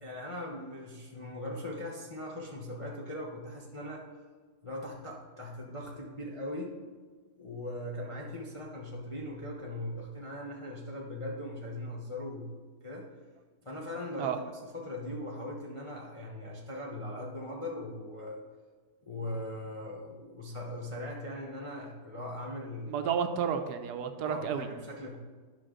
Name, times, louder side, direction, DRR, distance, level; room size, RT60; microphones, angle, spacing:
voice 1, 0.0-4.1 4.6-6.8 7.4-12.5 12.8-13.1 13.6-18.4 19.0-23.1 24.2-25.2, left 1 dB, 30° left, -2 dB, 0.6 m, -40 dB
voice 2, 22.9-24.7, right 7 dB, 75° right, 8 dB, 1.2 m, -31 dB
10.5 x 5.7 x 3.8 m, 1.4 s
omnidirectional pair, 1.8 m